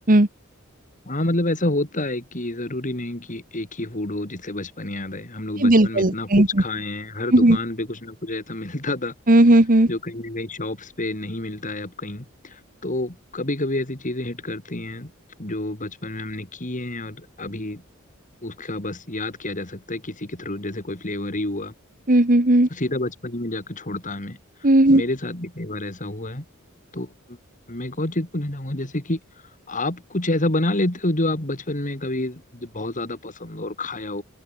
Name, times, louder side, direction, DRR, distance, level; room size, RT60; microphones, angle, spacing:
voice 1, 1.1-9.1 9.9-15.1 15.4-17.8 18.4-21.7 22.7-24.4 24.9-26.4 26.9-27.4 27.7-29.2 29.7-34.2, left 1 dB, 40° left, 3.2 m, -28 dB
voice 2, 5.6-6.5 7.3-7.6 9.3-9.9 22.1-22.7 24.6-25.0, right 1 dB, 40° right, 1.8 m, -15 dB
head